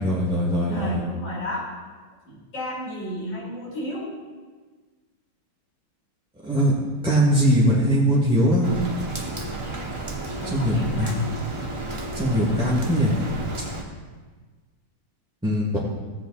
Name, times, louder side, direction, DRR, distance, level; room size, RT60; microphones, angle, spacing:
voice 1, 0.0-1.0 6.4-6.7 7.0-8.7 10.4-11.1 12.1-13.1 15.4-15.8, equal, 5° right, -8 dB, 1.5 m, -21 dB
voice 2, 0.6-1.7 2.3-4.1 10.4-11.3, equal, 70° left, -7 dB, 3.8 m, -32 dB
Rain, 8.6-13.8, right 2 dB, 25° right, 0.7 m, -32 dB
16.0 x 8.2 x 2.5 m, 1.4 s
omnidirectional pair, 2.2 m